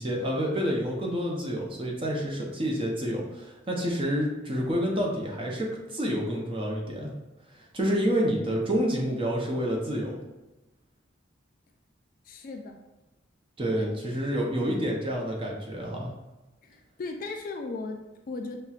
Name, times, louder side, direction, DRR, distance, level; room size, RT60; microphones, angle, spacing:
voice 1, 0.0-7.1 7.6-10.2 13.6-16.1, equal, 25° right, -2 dB, 0.6 m, -28 dB
voice 2, 12.3-12.8 13.8-14.0 16.6-18.6, left 3 dB, 45° left, 3 dB, 0.3 m, -37 dB
5.6 x 2.2 x 2.4 m, 1.1 s
head